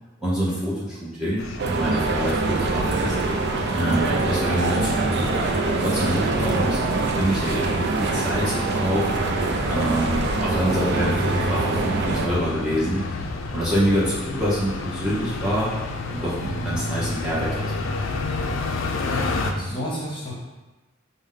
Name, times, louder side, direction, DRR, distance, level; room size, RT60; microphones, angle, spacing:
voice 1, 0.2-3.2 3.7-5.3 5.6-9.1 9.6-13.0 13.5-15.7 16.1-17.8, equal, 5° right, -10 dB, 0.7 m, -26 dB
sound 1, 1.4-19.5, left 2 dB, 75° left, 0.4 m, -31 dB
sound 2, 1.6-12.3, right 3 dB, 55° right, 0.4 m, -24 dB
voice 2, 19.5-20.4, left 1 dB, 25° left, -5 dB, 1.0 m, -31 dB
5.0 x 2.1 x 3.6 m, 1.1 s
head